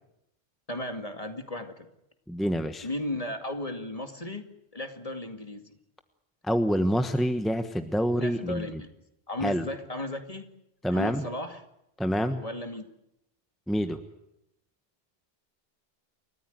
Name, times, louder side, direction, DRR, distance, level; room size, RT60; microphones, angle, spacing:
voice 1, 0.7-1.9 2.8-5.8 8.2-8.9 9.3-10.5 10.9-11.6 12.4-12.9, left 1 dB, 35° left, 6 dB, 2.3 m, -35 dB
voice 2, 2.3-2.9 6.5-8.8 9.4-9.6 10.8-11.2 12.0-12.4 13.7-14.0, equal, ahead, 7 dB, 1.2 m, -27 dB
29.5 x 14.5 x 9.4 m, 0.84 s
omnidirectional pair, 1.1 m